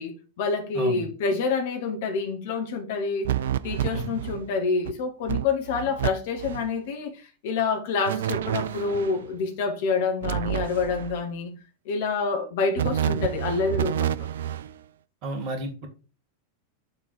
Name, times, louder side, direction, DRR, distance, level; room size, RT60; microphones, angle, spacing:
voice 1, 0.0-3.3 3.6-11.5 11.8-14.3, left 4 dB, 50° left, 1.5 m, -27 dB
voice 2, 0.8-1.1 3.9-4.2 12.8-13.1 15.2-15.9, right 2 dB, 40° right, 1.7 m, -32 dB
sound 1, 3.2-4.5 4.8-4.9 5.3-6.1 6.4-6.7 8.1-9.2 10.2-11.2 12.7-14.7, right 11 dB, 60° right, 0.4 m, -29 dB
7.0 x 3.8 x 4.7 m
figure-of-eight pair, 90°, 0 cm